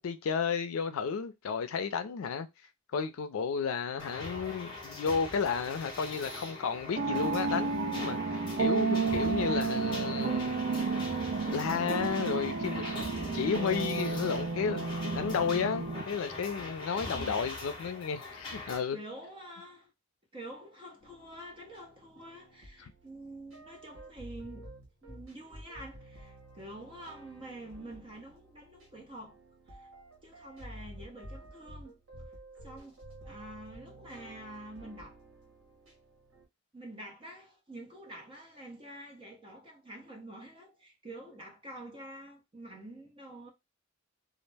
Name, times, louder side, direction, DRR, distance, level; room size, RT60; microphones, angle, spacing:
voice 1, 0.0-2.5 2.9-11.0 11.5-12.8 13.3-19.0 22.8-22.9, left 6 dB, 90° left, 0.4 m, -33 dB
sound 1, 4.0-18.8, left 2 dB, 25° left, 0.8 m, -42 dB
sound 2, 7.0-16.0, right 4 dB, 50° right, 0.4 m, -32 dB
voice 2, 17.1-17.5 18.9-19.9 20.3-24.7 25.0-29.4 29.7-29.9 30.2-32.0 32.6-33.0 33.3-35.2 36.7-43.5, right 1 dB, 25° right, 0.8 m, -47 dB
sound 3, 21.0-36.4, right 1 dB, 75° right, 1.1 m, -51 dB
2.4 x 2.0 x 3.2 m
head